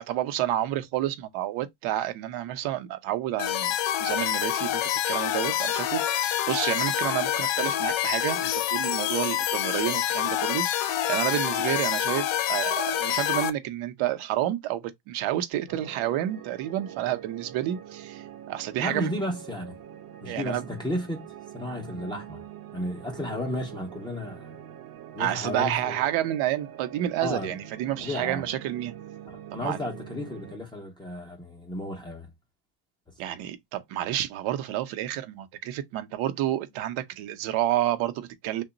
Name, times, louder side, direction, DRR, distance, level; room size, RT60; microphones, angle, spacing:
voice 1, 0.0-3.7 4.0-19.1 20.3-20.7 25.2-28.9 29.6-29.8 33.2-38.6, right 13 dB, 75° right, 0.7 m, -30 dB
sound 1, 3.4-13.5, left 11 dB, 65° left, 0.6 m, -27 dB
sound 2, 15.7-30.6, right 10 dB, 45° right, 0.6 m, -44 dB
voice 2, 18.8-19.8 20.2-22.5 22.7-24.5 25.1-26.0 27.2-27.6 28.0-28.5 29.3-32.3, left 1 dB, 10° left, 0.4 m, -33 dB
2.9 x 2.1 x 3.8 m
cardioid pair, 160°, 50 cm